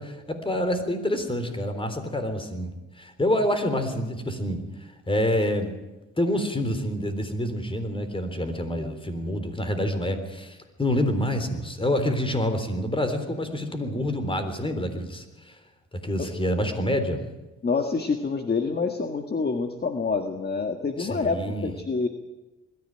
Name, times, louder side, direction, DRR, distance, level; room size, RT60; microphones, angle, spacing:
voice 1, 0.0-2.7 3.0-4.6 5.1-5.7 6.2-15.6 16.0-17.2 21.0-21.7, left 1 dB, 15° left, 8 dB, 3.7 m, -27 dB
voice 2, 17.6-22.1, left 4 dB, 35° left, 6 dB, 1.8 m, -27 dB
21.0 x 14.5 x 9.0 m, 1.1 s
cardioid pair, 90°, 30 cm